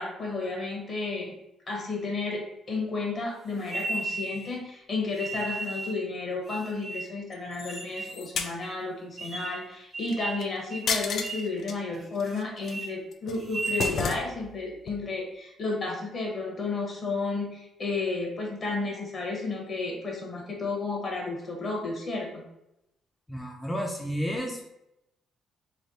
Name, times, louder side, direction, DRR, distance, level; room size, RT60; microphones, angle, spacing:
voice 1, 0.0-1.3 1.7-22.4, left 3 dB, 45° left, -1 dB, 1.2 m, -32 dB
sound 1, 3.7-4.5 5.2-6.0 6.5-7.2 7.7-8.2 8.6-8.7 9.2-9.6 9.9-10.5 10.7-10.9 11.2-11.5 11.9-12.4 12.6-12.9 13.4-14.0, right 2 dB, 35° right, 0.7 m, -34 dB
sound 2, 7.3-8.5 10.1-10.4 10.9-11.7 12.2-12.7 13.1-14.6 14.9-15.0, left 5 dB, 65° left, 0.4 m, -32 dB
voice 2, 23.3-24.6, equal, 10° left, 0 dB, 0.5 m, -31 dB
3.2 x 2.2 x 4.1 m, 0.85 s
cardioid pair, 90°, 0 cm